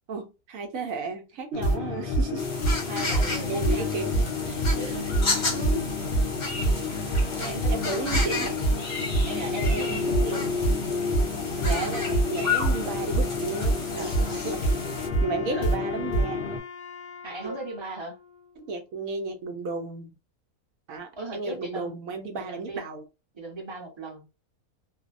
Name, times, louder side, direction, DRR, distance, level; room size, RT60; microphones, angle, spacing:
voice 1, 0.1-2.5 3.5-4.1 5.5-6.1 7.7-8.7 9.7-10.5 11.6-14.2 14.4-14.6 15.2-16.5 17.4-17.6 18.6-20.2 20.9-23.0, right 3 dB, 70° right, 0.9 m, -33 dB
sound 1, 1.5-16.6, equal, 85° left, 0.5 m, -27 dB
sound 2, 2.4-15.1, left 3 dB, 40° left, 0.8 m, -33 dB
voice 2, 2.9-4.1 4.5-5.1 7.4-8.1 9.2-10.6 14.0-14.5 15.5-15.7 17.2-18.2 21.1-22.0 22.5-22.9 23.3-24.3, right 2 dB, 25° right, 0.7 m, -38 dB
Wind instrument woodwind instrument, 13.9-19.1, left 5 dB, 70° left, 1.0 m, -44 dB
2.6 x 2.0 x 2.4 m
omnidirectional pair, 1.6 m